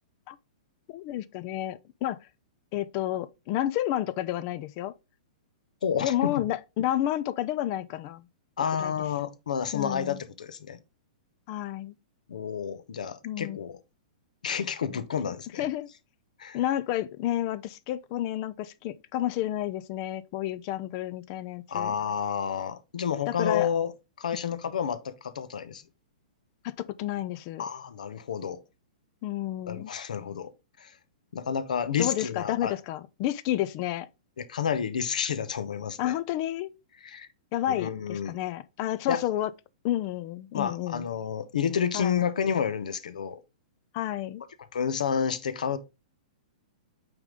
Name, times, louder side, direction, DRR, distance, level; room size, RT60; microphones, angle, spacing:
voice 1, 0.9-2.2 2.7-4.9 6.0-8.2 8.8-8.9 9.7-10.2 11.5-11.9 13.2-13.6 15.6-15.9 16.5-21.9 23.3-23.7 24.4-24.6 26.6-27.6 29.2-29.9 32.0-34.1 36.0-36.7 37.5-39.5 39.8-41.0 41.9-42.2 43.9-44.4, left 13 dB, 40° left, 0.5 m, -30 dB
voice 2, 5.8-6.4 8.6-10.8 12.3-13.8 14.4-15.7 16.4-16.6 21.7-23.9 24.2-25.8 27.6-28.6 29.7-30.5 30.8-30.9 31.3-32.8 34.4-36.1 37.0-37.3 37.7-38.4 39.1-39.2 40.5-43.4 44.7-45.8, left 7 dB, 80° left, 0.9 m, -30 dB
8.8 x 3.7 x 3.7 m
hypercardioid pair, 125°, 4 cm